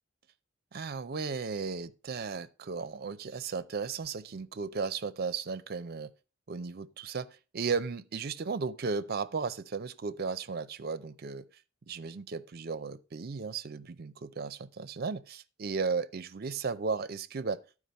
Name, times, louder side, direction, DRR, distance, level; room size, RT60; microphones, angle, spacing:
voice 1, 0.7-6.1 6.5-11.4 11.9-17.6, right 5 dB, 50° right, 0.5 m, -35 dB
11.5 x 4.9 x 5.2 m
head